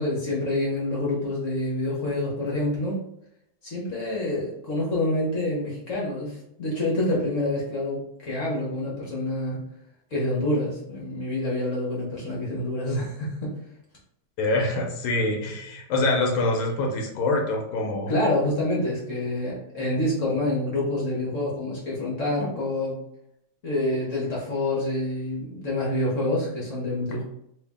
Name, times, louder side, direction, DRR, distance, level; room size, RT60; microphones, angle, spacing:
voice 1, 0.0-3.0 3.6-9.6 10.1-13.6 18.1-23.0 23.6-27.2, left 1 dB, 50° left, -5 dB, 1.0 m, -27 dB
voice 2, 14.4-18.2, left 2 dB, 85° left, 0 dB, 1.6 m, -25 dB
3.2 x 2.7 x 3.5 m, 0.77 s
omnidirectional pair, 2.3 m